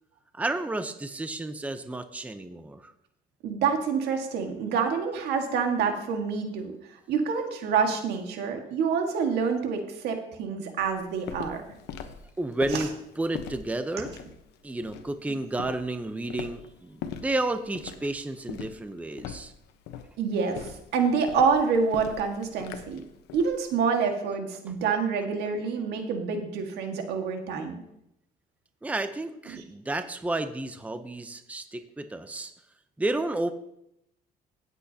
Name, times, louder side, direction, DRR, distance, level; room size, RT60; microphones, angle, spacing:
voice 1, 0.3-2.9 12.4-12.9 13.2-14.1 14.6-19.5 28.8-32.5 33.0-33.5, right 2 dB, 10° right, 9 dB, 0.7 m, -31 dB
voice 2, 3.4-6.7 7.1-11.6 12.7-12.8 20.2-23.0 23.3-27.8, right 5 dB, 80° right, 4 dB, 1.7 m, -27 dB
Walk footsteps, 10.8-23.6, left 8 dB, 85° left, 1.0 m, -41 dB
16.5 x 8.2 x 2.8 m, 0.78 s
cardioid pair, 110°, 17 cm